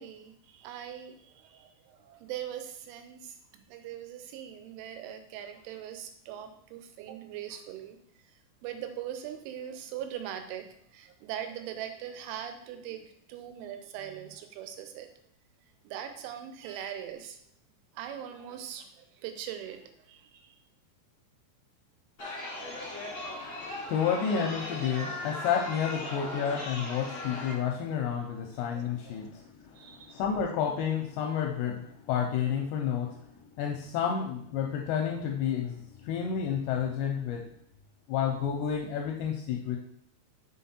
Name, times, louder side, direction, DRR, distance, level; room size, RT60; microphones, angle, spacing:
voice 1, 0.0-8.0 8.3-8.4 8.6-15.1 15.8-17.4 17.9-20.6 28.7-29.3 29.7-30.2, right 10 dB, 85° right, 7 dB, 3.1 m, -41 dB
Chatter, 22.2-27.5, left 1 dB, 60° left, 0.9 m, -38 dB
voice 2, 22.6-33.3 33.6-37.5 38.1-39.8, left 8 dB, 85° left, 1 dB, 2.5 m, -31 dB
6.6 x 3.8 x 4.3 m, 0.71 s
omnidirectional pair, 5.4 m